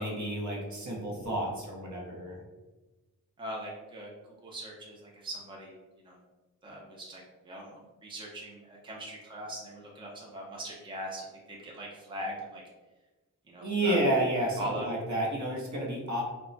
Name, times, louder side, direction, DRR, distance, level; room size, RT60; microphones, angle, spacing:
voice 1, 0.0-2.4 13.6-16.2, right 1 dB, 55° right, -2 dB, 0.8 m, -30 dB
voice 2, 3.4-4.1 4.4-6.2 6.6-12.6 13.5-14.0 14.6-14.9, right 1 dB, 15° right, -3 dB, 0.5 m, -41 dB
2.2 x 2.1 x 3.8 m, 1.2 s
wide cardioid pair, 100°, 35 cm